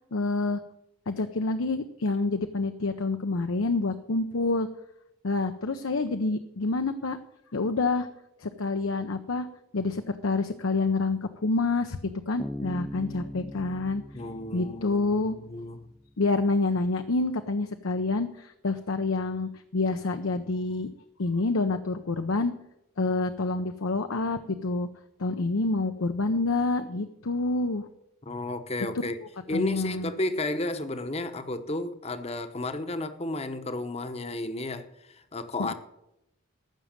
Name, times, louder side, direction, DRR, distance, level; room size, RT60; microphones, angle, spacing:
voice 1, 0.1-0.6 1.1-4.7 5.2-7.2 7.5-8.1 8.4-9.5 9.7-12.0 12.3-14.0 14.5-15.3 16.2-20.9 21.2-22.5 23.0-24.9 25.2-27.9 29.5-30.1 35.6-35.7, left 3 dB, 75° left, 0.7 m, -27 dB
Bass guitar, 12.4-15.9, left 1 dB, 10° left, 0.4 m, -40 dB
voice 2, 14.1-15.9 28.2-29.2 29.5-35.7, left 2 dB, 30° left, 0.9 m, -33 dB
14.5 x 6.3 x 7.3 m
head